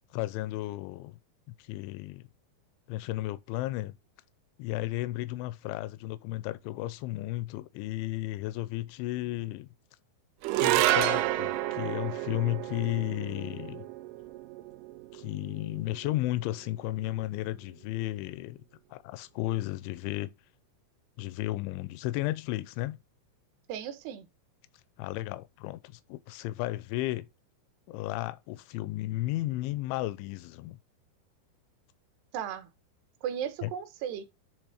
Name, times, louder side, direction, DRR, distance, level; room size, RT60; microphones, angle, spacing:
voice 1, 0.1-1.2 1.5-2.2 2.9-4.0 4.6-9.7 10.5-13.9 15.1-18.6 18.9-20.3 21.2-23.0 25.0-27.3 27.9-30.8 33.6-33.7, left 17 dB, 85° left, 3.0 m, -34 dB
sound 1, 10.4-16.9, right 15 dB, 90° right, 3.1 m, -30 dB
voice 2, 23.7-24.3 32.3-32.7 33.2-34.2, right 9 dB, 75° right, 2.9 m, -35 dB
10.5 x 3.6 x 4.9 m
omnidirectional pair, 5.5 m